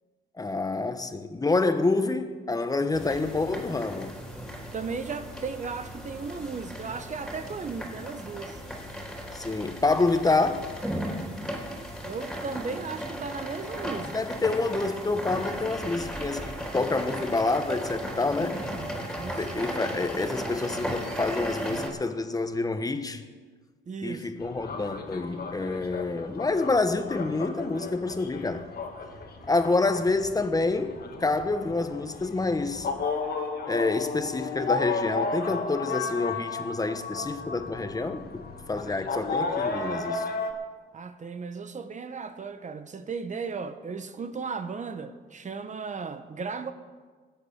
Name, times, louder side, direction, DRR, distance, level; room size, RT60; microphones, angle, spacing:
voice 1, 0.4-4.2 9.3-10.6 14.1-18.6 19.4-23.2 24.0-28.7 29.5-32.9 33.6-40.3, left 3 dB, 20° left, 1.2 m, -27 dB
sound 1, 2.9-21.9, equal, ahead, 3.5 m, -36 dB
voice 2, 4.7-8.6 12.0-14.1 19.1-19.7 23.9-24.3 40.9-46.7, right 5 dB, 35° right, 1.0 m, -36 dB
sound 2, 24.4-40.5, left 4 dB, 50° left, 1.9 m, -34 dB
20.0 x 8.1 x 5.9 m
cardioid pair, 90°, 20 cm